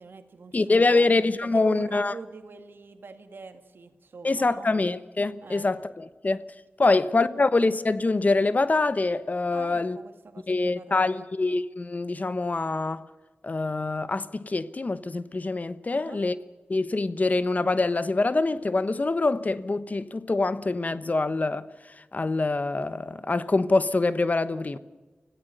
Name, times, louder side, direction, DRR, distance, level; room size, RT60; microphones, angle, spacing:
voice 1, 0.0-1.1 1.4-4.7 5.4-5.7 6.8-6.9 9.5-11.3 15.9-16.3 24.5-24.8, right 4 dB, 75° right, 1.9 m, -44 dB
voice 2, 0.5-2.1 4.2-6.4 6.8-10.0 10.5-13.0 13.4-16.3 16.7-21.7 22.1-24.8, left 3 dB, 45° left, 1.1 m, -25 dB
25.5 x 16.0 x 6.7 m
cardioid pair, 45°, 4 cm